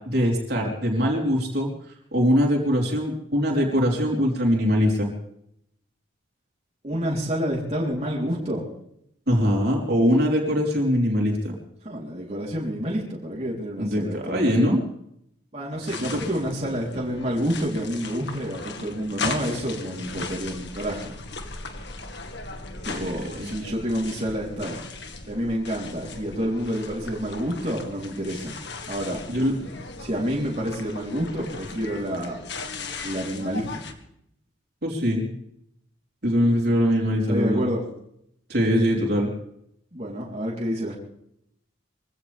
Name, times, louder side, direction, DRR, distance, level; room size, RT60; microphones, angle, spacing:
voice 1, 0.0-1.7 2.1-5.1 9.3-11.5 13.8-14.8 16.0-16.2 22.9-23.5 29.3-29.7 34.8-35.3 36.2-37.6 38.5-39.3, equal, 50° right, -1 dB, 4.2 m, -22 dB
voice 2, 6.8-8.6 10.1-10.3 11.8-14.5 15.5-21.2 22.8-24.8 25.3-28.6 28.9-29.2 30.0-32.4 33.0-33.8 37.3-37.8 39.9-41.0, equal, 30° right, -4 dB, 4.0 m, -28 dB
sound 1, 15.8-33.9, left 3 dB, 55° left, 2.0 m, -37 dB
24.0 x 16.5 x 3.6 m, 0.74 s
head